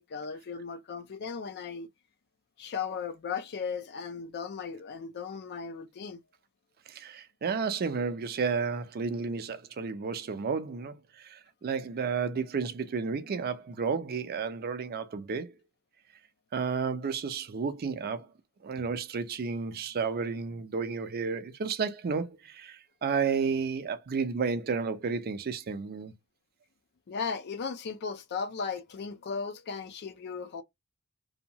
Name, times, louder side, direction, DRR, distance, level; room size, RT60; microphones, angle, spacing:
voice 1, 0.0-1.9 2.6-6.2 27.1-30.6, left 5 dB, 50° left, 0.4 m, -36 dB
voice 2, 6.9-15.5 16.5-18.3 18.6-26.1, right 5 dB, 45° right, 0.4 m, -32 dB
2.8 x 2.2 x 2.7 m
head